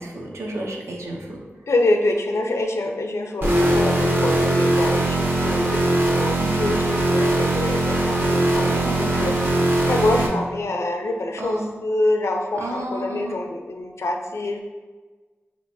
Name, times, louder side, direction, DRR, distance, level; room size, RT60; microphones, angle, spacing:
voice 1, 0.0-1.4 6.3-6.6 8.6-9.4 11.4-11.7 12.6-13.4, right 1 dB, 85° right, 0 dB, 0.6 m, -32 dB
voice 2, 1.7-14.6, left 2 dB, 85° left, 3 dB, 0.4 m, -26 dB
sound 1, 3.4-10.3, right 1 dB, 50° right, 0.7 m, -20 dB
5.2 x 3.0 x 2.6 m, 1.4 s
wide cardioid pair, 55°, 5 cm